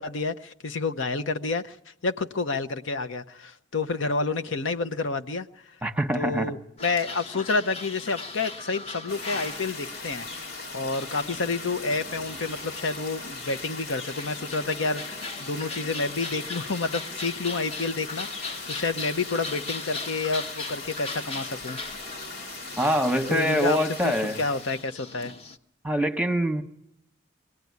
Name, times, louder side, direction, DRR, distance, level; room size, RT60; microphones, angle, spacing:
voice 1, 0.0-1.8 2.0-5.5 6.1-10.3 10.7-21.8 23.3-25.3, left 3 dB, 75° left, 9 dB, 0.8 m, -29 dB
voice 2, 5.8-6.5 22.8-24.4 25.8-26.6, equal, 5° right, 7 dB, 1.1 m, -24 dB
sound 1, 6.8-25.6, left 3 dB, 30° left, 0.8 m, -39 dB
sound 2, 9.1-24.9, left 3 dB, 90° left, 2.4 m, -40 dB
23.5 x 17.5 x 9.4 m, 0.77 s
head